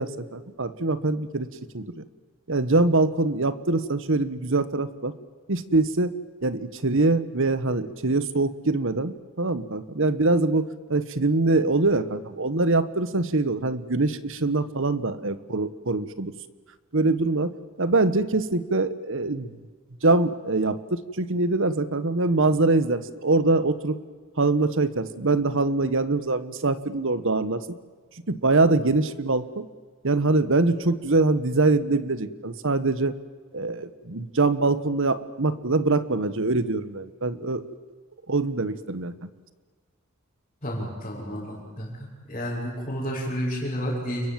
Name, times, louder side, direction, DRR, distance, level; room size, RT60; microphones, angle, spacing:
voice 1, 0.0-1.5 1.7-2.0 2.5-5.1 5.5-6.1 6.4-16.3 16.9-19.5 20.0-24.0 24.4-27.7 28.3-29.7 30.0-33.2 33.5-37.6 38.3-39.1, right 2 dB, 60° right, 14 dB, 1.3 m, -24 dB
voice 2, 40.6-41.9 42.3-44.3, equal, 30° left, -9 dB, 7.0 m, -30 dB
29.5 x 23.0 x 7.6 m, 1.5 s
head